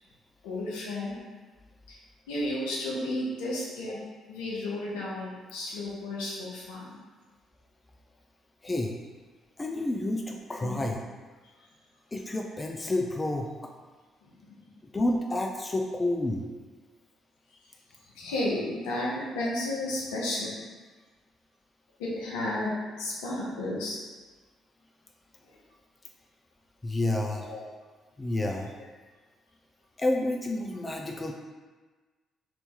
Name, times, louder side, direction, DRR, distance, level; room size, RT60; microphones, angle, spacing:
voice 1, 0.4-1.2 1.9-2.0 2.3-4.0 4.3-7.0 10.6-10.9 14.2-14.6 18.1-20.6 22.0-24.0 27.4-27.6, left 1 dB, 75° left, -4 dB, 0.7 m, -33 dB
voice 2, 8.6-9.0 9.6-11.0 12.1-13.5 14.9-16.4 26.8-27.5 28.2-28.7 30.0-31.3, left 1 dB, 25° left, 1 dB, 0.4 m, -29 dB
2.9 x 2.7 x 3.5 m, 1.3 s
hypercardioid pair, 45°, 0 cm